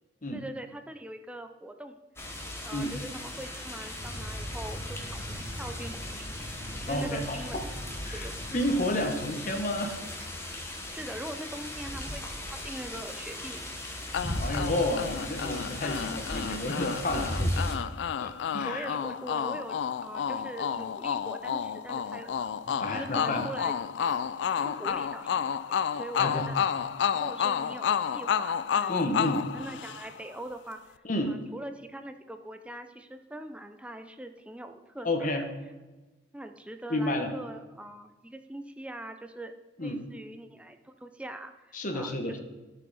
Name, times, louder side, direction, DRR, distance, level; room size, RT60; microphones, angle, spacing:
voice 1, 0.3-2.0 2.6-6.3 6.8-7.6 8.1-8.8 9.1-9.2 10.9-13.7 18.6-22.5 22.9-24.2 24.6-26.7 27.1-28.9 29.5-31.0 31.3-35.3 36.3-39.5 39.8-42.4, right 1 dB, 5° right, 7 dB, 0.4 m, -42 dB
sound 1, 2.2-17.8, left 1 dB, 15° left, 1.1 m, -37 dB
sound 2, 3.9-8.9, equal, 75° right, 2.4 m, -41 dB
voice 2, 6.9-7.6 8.0-8.3 8.5-10.0 14.4-17.8 18.2-18.9 22.7-23.5 26.2-26.5 28.9-29.5 31.0-31.4 35.0-35.5 36.9-37.3 39.8-40.0 41.7-42.4, left 1 dB, 45° left, 4 dB, 1.1 m, -31 dB
sound 3, 14.1-30.3, left 8 dB, 70° left, 0.3 m, -31 dB
12.0 x 5.5 x 4.2 m, 1.2 s
head